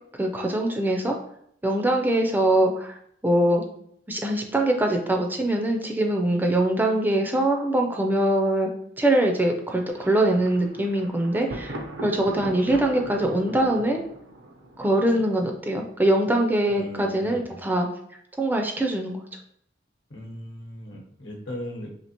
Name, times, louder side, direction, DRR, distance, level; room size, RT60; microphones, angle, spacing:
voice 1, 0.2-1.2 1.6-2.9 3.2-3.6 4.1-8.7 9.0-14.0 14.8-17.9 18.4-19.2, right 1 dB, 10° right, 2 dB, 0.4 m, -23 dB
Thunder, 9.9-15.7, right 1 dB, 65° right, 0.5 m, -39 dB
voice 2, 16.7-17.4 20.1-21.9, equal, 75° left, 0 dB, 1.0 m, -38 dB
4.3 x 2.8 x 2.8 m, 0.70 s
head